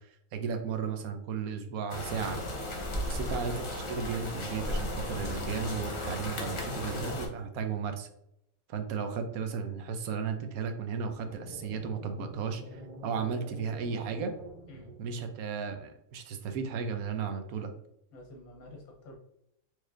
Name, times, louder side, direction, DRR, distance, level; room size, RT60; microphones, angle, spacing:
voice 1, 0.3-2.4 3.1-8.1 8.7-14.3 15.0-17.7, right 6 dB, 90° right, 7 dB, 1.1 m, -34 dB
sound 1, 1.9-7.3, left 1 dB, 35° left, 0.5 m, -35 dB
sound 2, 11.1-15.4, right 1 dB, 35° right, 1.1 m, -47 dB
voice 2, 18.1-19.2, left 1 dB, 80° left, 1 dB, 1.4 m, -49 dB
4.5 x 3.2 x 2.4 m, 0.77 s
omnidirectional pair, 1.5 m